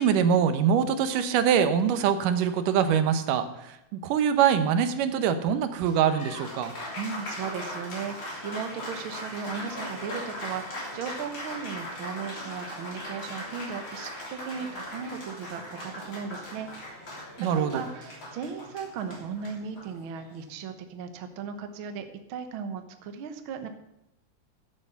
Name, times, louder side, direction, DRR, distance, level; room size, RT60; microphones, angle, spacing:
voice 1, 0.0-6.7 17.4-17.8, right 8 dB, 85° right, 10 dB, 2.5 m, -24 dB
Applause, 5.7-20.4, left 1 dB, 35° left, 3.7 m, -39 dB
voice 2, 6.9-17.2 17.5-23.7, right 6 dB, 65° right, 7 dB, 1.3 m, -37 dB
10.5 x 8.4 x 7.0 m, 0.86 s
omnidirectional pair, 3.7 m